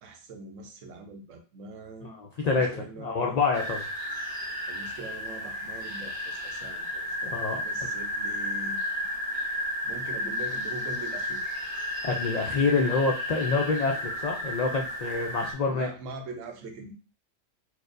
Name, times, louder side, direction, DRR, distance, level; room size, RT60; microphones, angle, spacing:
voice 1, 0.0-2.2 2.5-3.4 4.7-7.4 7.6-8.8 9.8-11.4 15.7-16.9, right 3 dB, 85° right, 5 dB, 1.0 m, -42 dB
voice 2, 2.0-3.9 7.3-7.6 12.0-15.9, left 4 dB, 90° left, 1 dB, 0.3 m, -27 dB
sound 1, 3.5-15.5, left 1 dB, 20° right, 0.7 m, -33 dB
4.5 x 2.1 x 2.5 m, 0.36 s
omnidirectional pair, 1.3 m